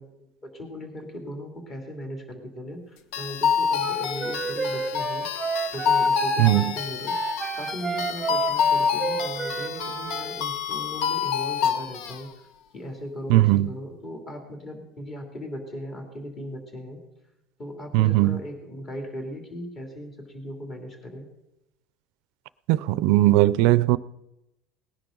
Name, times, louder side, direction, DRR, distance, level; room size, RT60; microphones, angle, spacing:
voice 1, 0.0-5.3 5.7-7.2 7.6-12.3 12.7-17.0 17.6-21.3, equal, 30° left, 2.8 m, -38 dB
sound 1, 3.1-12.2, left 7 dB, 70° left, 0.8 m, -27 dB
Wind instrument woodwind instrument, 3.8-10.3, right 5 dB, 15° right, 0.9 m, -31 dB
voice 2, 6.4-6.7 13.3-13.7 17.9-18.4 22.7-24.0, right 17 dB, 70° right, 0.4 m, -19 dB
19.0 x 10.5 x 3.9 m
cardioid pair, 145°, 0 cm